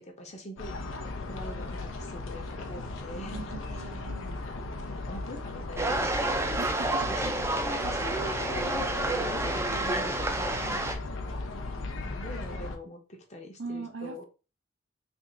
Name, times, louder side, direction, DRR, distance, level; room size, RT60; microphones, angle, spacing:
voice 1, 0.0-4.0 4.4-6.0 6.3-6.6 7.1-7.3 7.6-10.5 11.1-11.4 12.0-14.2, equal, 35° left, 0.9 m, -43 dB
sound 1, 0.6-12.8, left 2 dB, 80° left, 0.7 m, -37 dB
voice 2, 3.3-4.5 6.5-7.3 10.6-10.9 13.6-14.2, right 3 dB, 70° right, 0.7 m, -40 dB
sound 2, 5.8-11.0, right 2 dB, 15° right, 0.4 m, -29 dB
3.5 x 2.5 x 4.0 m
head